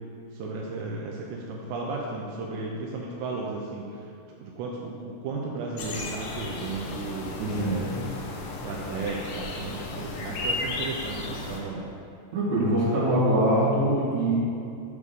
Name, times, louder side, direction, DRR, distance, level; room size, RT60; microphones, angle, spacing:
voice 1, 0.3-4.1 4.4-8.0 8.6-11.9, right 3 dB, 90° right, -2 dB, 2.5 m, -34 dB
sound 1, 5.8-11.6, left 2 dB, 85° left, 2.2 m, -34 dB
voice 2, 7.4-8.0 12.3-14.3, right 1 dB, 55° right, -8 dB, 2.3 m, -23 dB
8.1 x 3.7 x 6.8 m, 2.5 s
omnidirectional pair, 5.7 m